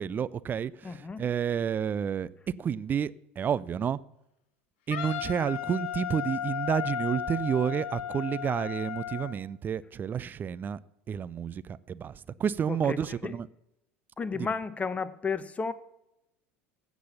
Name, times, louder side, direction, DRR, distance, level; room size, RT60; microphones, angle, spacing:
voice 1, 0.0-2.3 2.6-4.0 4.9-10.8 11.1-13.5 14.3-14.5, right 8 dB, 30° right, 0.5 m, -30 dB
voice 2, 0.8-1.2 12.7-13.3 14.2-15.7, left 5 dB, 20° left, 0.9 m, -33 dB
Wind instrument woodwind instrument, 4.9-9.4, left 10 dB, 60° left, 1.0 m, -35 dB
16.0 x 6.2 x 7.0 m
figure-of-eight pair, 70°, 7 cm